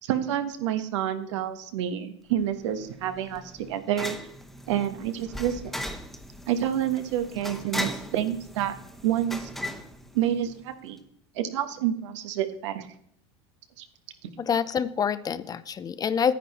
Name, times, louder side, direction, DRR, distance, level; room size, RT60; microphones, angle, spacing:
voice 1, 0.0-4.2 4.7-5.7 6.5-8.7 9.0-9.5 10.1-11.0 11.3-12.9 13.8-13.9 14.2-14.3, right 10 dB, 80° right, 9 dB, 1.2 m, -28 dB
sound 1, 2.4-10.7, equal, ahead, 1.1 m, -38 dB
voice 2, 14.4-16.3, left 7 dB, 25° left, 15 dB, 0.5 m, -26 dB
10.0 x 9.2 x 4.1 m, 0.69 s
supercardioid pair, 110°, 15 cm